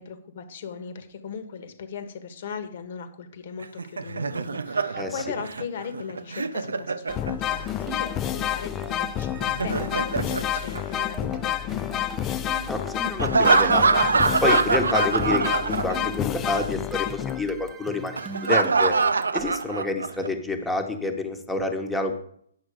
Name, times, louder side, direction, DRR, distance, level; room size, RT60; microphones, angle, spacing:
voice 1, 0.0-12.1, left 6 dB, 55° left, 9 dB, 1.4 m, -38 dB
Laughter, 3.6-7.7 9.4-11.5 13.2-16.3 16.5-16.7 18.2-20.3, right 4 dB, 85° right, 0.5 m, -24 dB
sound 1, 7.1-17.7, left 11 dB, 25° left, 0.4 m, -29 dB
sound 2, 7.5-19.8, right 5 dB, 15° right, 0.8 m, -42 dB
voice 2, 12.7-13.8 14.4-19.0 19.3-22.1, left 2 dB, 5° left, 4 dB, 1.1 m, -28 dB
9.6 x 6.1 x 5.0 m, 0.64 s
hypercardioid pair, 140°, 0 cm